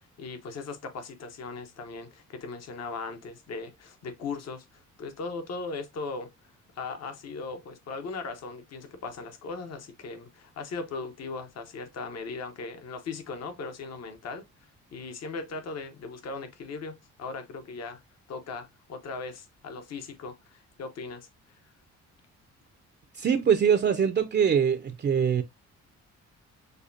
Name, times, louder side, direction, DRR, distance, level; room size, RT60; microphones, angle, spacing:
voice 1, 0.0-6.3 6.7-14.4 14.9-18.0 18.3-21.3 21.6-21.7, left 4 dB, 55° left, 1.0 m, -38 dB
voice 2, 23.1-25.4, right 7 dB, 35° right, 0.5 m, -23 dB
6.5 x 2.3 x 2.6 m
cardioid pair, 90°, 30 cm